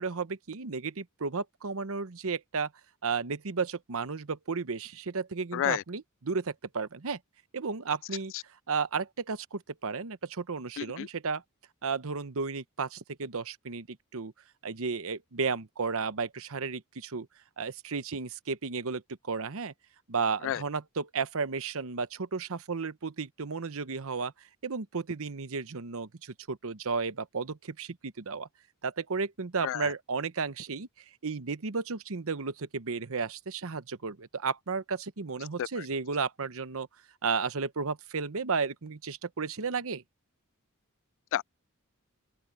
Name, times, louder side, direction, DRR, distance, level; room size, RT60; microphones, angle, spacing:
voice 1, 0.0-2.7 3.0-7.2 7.5-8.3 8.7-11.4 11.8-14.3 14.6-17.3 17.6-19.0 19.3-19.7 20.1-24.3 24.6-28.5 28.8-36.9 37.2-40.0, right 5 dB, 70° right, 0.9 m, -33 dB
voice 2, 5.5-5.8 10.8-11.1 20.4-20.6 29.6-29.9 35.6-35.8 41.3-41.4, left 11 dB, 60° left, 0.3 m, -31 dB
open air
head